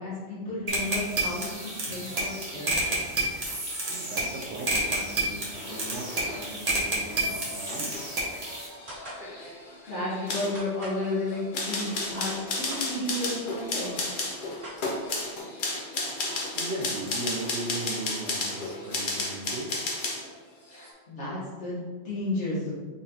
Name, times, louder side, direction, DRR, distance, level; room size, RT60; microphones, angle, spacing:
voice 1, 0.0-3.2 9.2-9.4 9.9-14.2 20.7-22.7, left 1 dB, 90° left, -9 dB, 1.6 m, -33 dB
sound 1, 0.7-8.7, right 2 dB, 40° right, 0.9 m, -30 dB
sound 2, 1.0-20.3 20.7-20.9, left 2 dB, 50° left, 0.9 m, -35 dB
voice 2, 3.9-8.2 16.2-16.3 16.5-19.7, right 2 dB, 85° right, 1 dB, 1.0 m, -38 dB
sound 3, 8.9-9.2 10.5-11.0 11.9-12.8 13.7-13.8 14.0-15.2, right 1 dB, 55° right, 1.8 m, -43 dB
4.0 x 3.9 x 2.8 m, 1.4 s
omnidirectional pair, 1.2 m